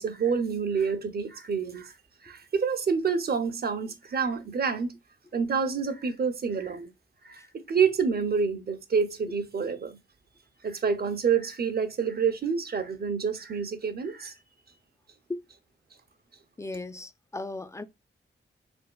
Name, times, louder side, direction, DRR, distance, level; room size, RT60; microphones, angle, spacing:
voice 1, 0.0-1.9 2.2-4.9 5.3-6.9 7.2-10.0 10.6-14.3, right 6 dB, 50° right, 0.7 m, -28 dB
voice 2, 16.6-17.8, left 2 dB, 15° left, 0.4 m, -36 dB
3.4 x 3.0 x 2.3 m
cardioid pair, 75°, 21 cm